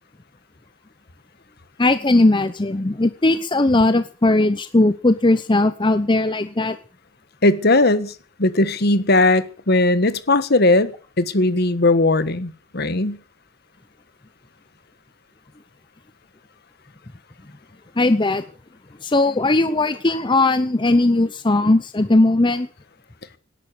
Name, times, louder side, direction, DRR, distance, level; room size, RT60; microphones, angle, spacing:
voice 1, 1.8-6.8 18.0-18.4 19.0-22.7, left 2 dB, 25° left, 11 dB, 0.8 m, -18 dB
voice 2, 7.4-8.1 8.4-10.9 11.2-13.2, left 2 dB, 55° left, 13 dB, 1.5 m, -18 dB
18.0 x 11.0 x 6.9 m, 0.41 s
head